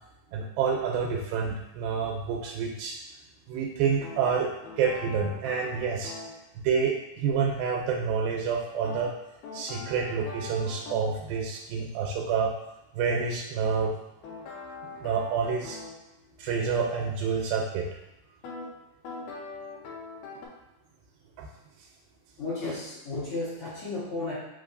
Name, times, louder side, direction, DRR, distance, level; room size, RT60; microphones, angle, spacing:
voice 1, 0.3-3.0 3.5-4.5 4.8-6.1 6.6-9.1 9.5-12.5 12.9-13.9 15.0-15.8 16.4-17.9 21.4-21.5, right 6 dB, 85° right, 1 dB, 2.3 m, -28 dB
sound 1, 4.0-6.4 8.8-11.2 13.6-16.0 18.4-18.7 19.0-20.5, left 3 dB, 75° left, 2.1 m, -42 dB
voice 2, 22.4-24.3, left 3 dB, 55° left, -10 dB, 1.7 m, -33 dB
5.1 x 3.5 x 2.6 m, 0.91 s
omnidirectional pair, 4.2 m